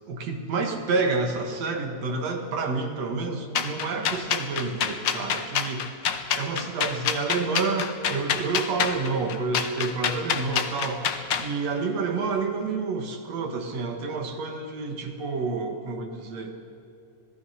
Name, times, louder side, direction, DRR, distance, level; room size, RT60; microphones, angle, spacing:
voice 1, 0.1-5.9 6.3-16.5, right 4 dB, 65° right, 4 dB, 2.9 m, -29 dB
sound 1, 3.5-11.5, left 7 dB, 60° left, 1.2 m, -27 dB
26.5 x 18.5 x 5.8 m, 2.6 s
omnidirectional pair, 3.3 m